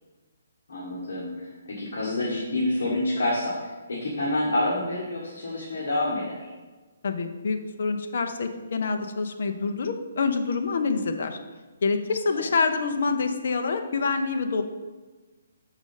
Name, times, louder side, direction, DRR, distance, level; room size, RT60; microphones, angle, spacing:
voice 1, 0.7-6.5, left 1 dB, 60° left, -6 dB, 1.6 m, -28 dB
voice 2, 7.0-11.4 11.8-14.6, left 4 dB, 45° left, 6 dB, 0.7 m, -26 dB
6.5 x 4.9 x 5.5 m, 1.3 s
hypercardioid pair, 180°, 0 cm